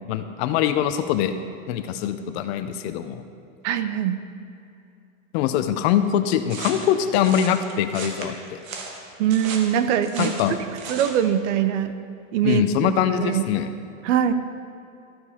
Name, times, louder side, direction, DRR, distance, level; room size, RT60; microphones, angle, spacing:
voice 1, 0.1-1.3 1.7-3.2 5.3-8.6 10.2-10.6 12.4-13.7, left 9 dB, 50° left, 10 dB, 0.7 m, -23 dB
voice 2, 3.6-4.2 9.2-10.3 10.9-11.9 12.3-12.9 13.2-13.4 14.0-14.3, right 9 dB, 65° right, 11 dB, 0.8 m, -22 dB
sound 1, 6.5-11.2, right 4 dB, 90° right, 1.7 m, -36 dB
13.0 x 7.0 x 4.4 m, 2.6 s
supercardioid pair, 145°, 40 cm